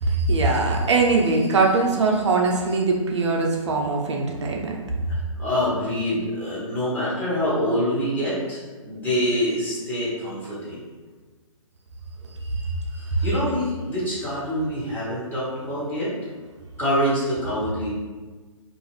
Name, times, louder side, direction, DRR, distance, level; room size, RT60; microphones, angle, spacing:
voice 1, 0.0-4.8 12.5-12.7 13.1-13.2, right 3 dB, 55° right, 0 dB, 0.4 m, -21 dB
voice 2, 5.1-10.8 13.2-16.1 16.8-17.9, equal, 10° left, -10 dB, 0.7 m, -25 dB
2.4 x 2.3 x 3.1 m, 1.4 s
figure-of-eight pair, 135°, 17 cm